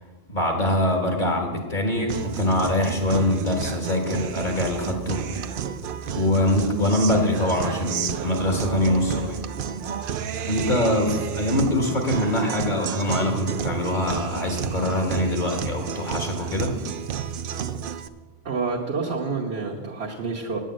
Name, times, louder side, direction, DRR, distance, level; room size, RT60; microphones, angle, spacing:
voice 1, 0.3-5.2 6.1-9.4 10.5-16.7, left 1 dB, 50° left, 2 dB, 1.7 m, -24 dB
Guitar, 2.1-18.1, right 8 dB, 65° right, 0.7 m, -31 dB
voice 2, 18.4-20.6, right 4 dB, 80° right, -3 dB, 1.4 m, -28 dB
9.0 x 8.6 x 7.6 m, 1.3 s
omnidirectional pair, 1.1 m